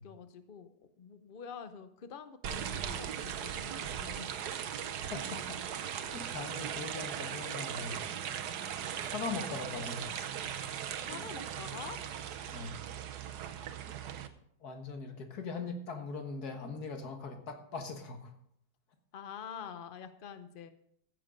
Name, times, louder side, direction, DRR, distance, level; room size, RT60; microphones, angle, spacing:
voice 1, 0.0-4.4 11.0-12.0 19.1-20.7, left 7 dB, 85° left, 10 dB, 0.4 m, -47 dB
sound 1, 2.4-14.3, right 9 dB, 65° right, 1.3 m, -39 dB
voice 2, 5.1-5.6 6.1-8.1 9.1-10.4 12.5-12.9 14.6-18.3, left 4 dB, 60° left, 5 dB, 1.9 m, -41 dB
14.5 x 7.5 x 5.2 m, 0.71 s
omnidirectional pair, 2.0 m